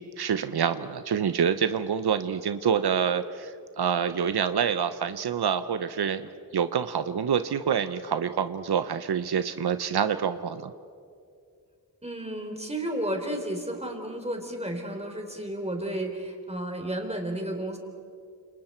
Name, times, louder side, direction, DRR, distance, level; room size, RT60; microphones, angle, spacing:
voice 1, 0.0-10.7, right 7 dB, 85° right, 11 dB, 0.8 m, -27 dB
voice 2, 12.0-17.8, right 1 dB, 15° right, 2 dB, 4.0 m, -32 dB
29.0 x 28.5 x 4.4 m, 2.4 s
wide cardioid pair, 70°, 38 cm